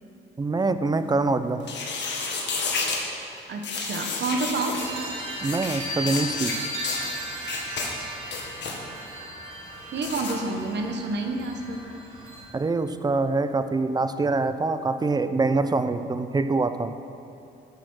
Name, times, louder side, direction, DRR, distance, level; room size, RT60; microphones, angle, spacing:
voice 1, 0.4-1.6 5.4-6.7 12.5-16.9, right 3 dB, 20° right, 11 dB, 0.5 m, -25 dB
sound 1, 1.6-3.0 3.6-4.9 5.4-5.8 6.1-6.5 6.8-7.0 7.5-7.9 8.2-8.8 10.0-10.3, left 4 dB, 65° left, 1.7 m, -30 dB
voice 2, 3.5-4.8 9.9-11.9, right 3 dB, 60° right, 4 dB, 1.1 m, -29 dB
sound 2, 4.7-12.4, equal, 90° right, 2.0 m, -36 dB
10.5 x 6.8 x 6.2 m, 2.7 s
cardioid pair, 90°, 20 cm